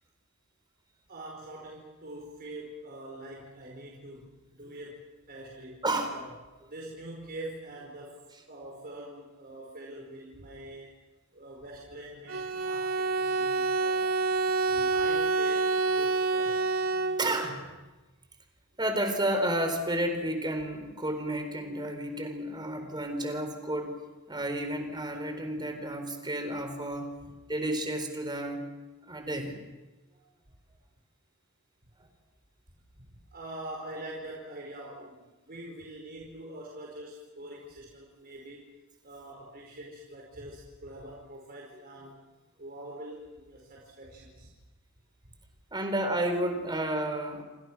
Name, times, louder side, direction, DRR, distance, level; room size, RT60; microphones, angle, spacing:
voice 1, 1.1-5.8 6.1-6.3 6.7-11.0 11.3-14.1 14.6-16.6 32.0-32.1 32.9-38.7 39.0-42.2 42.6-44.5, right 1 dB, 45° right, -2 dB, 5.1 m, -44 dB
voice 2, 5.8-6.2 17.0-17.8 18.8-24.0 24.3-27.1 27.5-28.6 29.0-29.6 45.7-47.4, right 1 dB, 20° right, 6 dB, 4.3 m, -31 dB
Bowed string instrument, 12.3-17.5, right 3 dB, 85° right, 1.6 m, -27 dB
29.5 x 25.5 x 6.2 m, 1.2 s
head